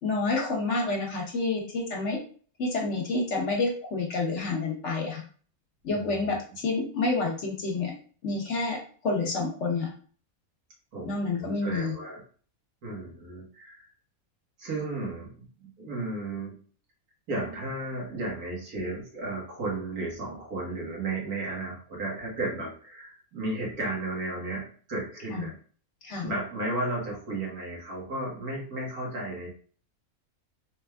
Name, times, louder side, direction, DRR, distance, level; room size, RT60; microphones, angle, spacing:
voice 1, 0.0-2.2 2.6-5.2 5.8-7.9 8.2-9.9 11.0-12.0 25.3-25.5 26.0-26.3, left 3 dB, 55° left, 0 dB, 1.1 m, -29 dB
voice 2, 5.9-6.3 10.9-12.2 12.8-13.9 14.6-16.6 17.3-25.5 26.2-29.5, right 2 dB, 80° right, -3 dB, 1.8 m, -34 dB
4.3 x 3.3 x 2.3 m, 0.42 s
omnidirectional pair, 1.5 m